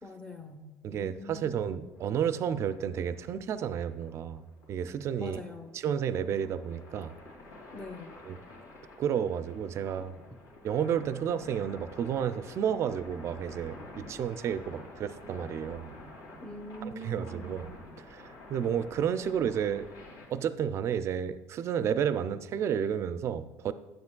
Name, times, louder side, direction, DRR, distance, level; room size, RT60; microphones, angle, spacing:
voice 1, 0.0-1.6 5.2-5.8 7.7-8.2 16.4-17.6, equal, 15° left, 5 dB, 0.7 m, -43 dB
voice 2, 0.8-5.4 5.7-7.1 8.3-8.4 9.0-10.1 10.6-16.0 16.8-19.9 20.3-23.7, right 8 dB, 45° right, 13 dB, 0.4 m, -31 dB
sound 1, 1.9-20.3, left 2 dB, 80° left, 2.3 m, -49 dB
9.5 x 7.6 x 2.2 m, 1.1 s
cardioid pair, 120°, 7 cm